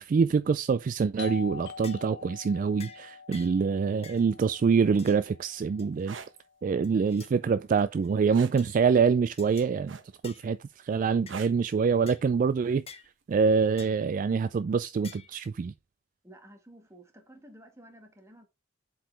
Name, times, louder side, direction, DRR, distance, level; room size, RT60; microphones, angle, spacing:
voice 1, 0.0-6.2 6.6-10.0 10.2-12.8 13.3-15.7, right 5 dB, 45° right, 0.3 m, -25 dB
Doorbell, 1.2-6.6, left 5 dB, 65° left, 0.6 m, -45 dB
sound 1, 1.2-1.4 1.8-2.2 2.8-3.0 3.3-3.6 4.0-4.3 5.0-5.2 5.8-6.2 6.8-7.3 7.8-8.1 8.6-8.8 9.4-9.7 10.2-10.5 11.3-11.4 12.1-12.2 12.9-13.1 13.8-14.0 15.0-15.4, left 6 dB, 35° left, 0.9 m, -49 dB
sound 2, 5.9-6.3 8.3-8.6 9.9-10.3 11.3-11.6 13.0-13.2, right 6 dB, 85° right, 1.0 m, -42 dB
voice 2, 16.2-18.5, right 1 dB, 15° right, 1.6 m, -52 dB
7.5 x 4.7 x 3.4 m
head